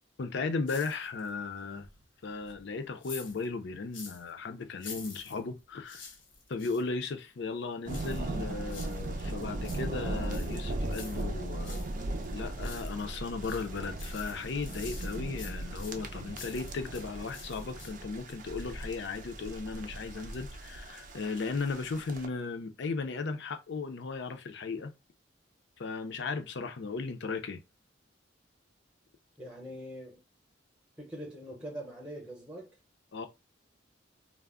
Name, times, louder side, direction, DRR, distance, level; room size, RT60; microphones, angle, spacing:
voice 1, 0.2-1.9 2.2-6.0 6.5-11.9 12.3-24.9 25.8-27.6 33.1-33.3, left 4 dB, 65° left, 0.5 m, -36 dB
sound 1, 0.7-1.4 1.8-4.3 4.7-6.9 7.9-9.1 9.4-11.9 12.3-13.1 13.4-17.1 17.3-18.1 18.5-18.6, left 5 dB, 90° left, 0.9 m, -48 dB
sound 2, 7.9-22.3, right 2 dB, 45° right, 0.4 m, -38 dB
voice 2, 29.4-30.2 31.0-32.8, equal, 5° right, 0.7 m, -43 dB
2.3 x 2.0 x 3.5 m
head